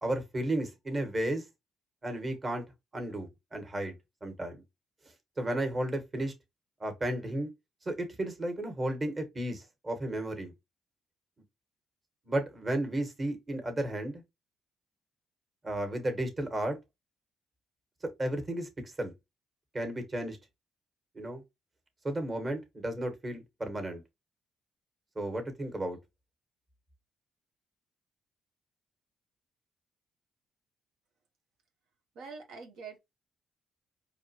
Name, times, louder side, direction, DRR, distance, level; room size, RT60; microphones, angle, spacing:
voice 1, 0.0-1.4 2.0-2.6 2.9-3.9 4.2-4.6 5.4-6.3 6.8-7.5 7.8-10.5 12.2-14.2 15.6-16.8 18.2-19.1 19.7-20.4 21.1-21.4 22.0-24.0 25.1-26.0, right 1 dB, 30° right, 1.5 m, -33 dB
voice 2, 32.1-33.0, right 5 dB, 85° right, 1.0 m, -44 dB
4.5 x 3.0 x 2.9 m
cardioid pair, 90°, 0 cm